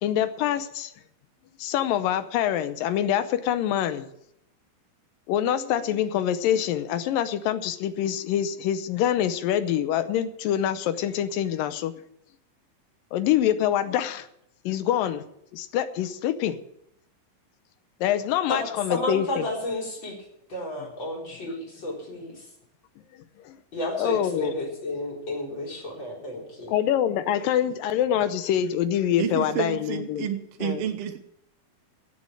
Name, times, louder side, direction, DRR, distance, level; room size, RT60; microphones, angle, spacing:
voice 1, 0.0-0.9 1.6-4.1 5.3-11.9 13.1-14.3 14.7-15.2 15.5-16.6 18.0-19.5 23.5-23.6 23.9-24.5 26.7-30.3 30.6-30.8, left 10 dB, 80° left, 12 dB, 2.4 m, -25 dB
voice 2, 18.9-20.2 20.5-22.5 23.7-26.7, left 1 dB, 30° left, -3 dB, 4.8 m, -32 dB
voice 3, 29.2-31.2, right 9 dB, 75° right, 7 dB, 1.4 m, -30 dB
17.0 x 7.4 x 7.5 m, 0.77 s
omnidirectional pair, 4.1 m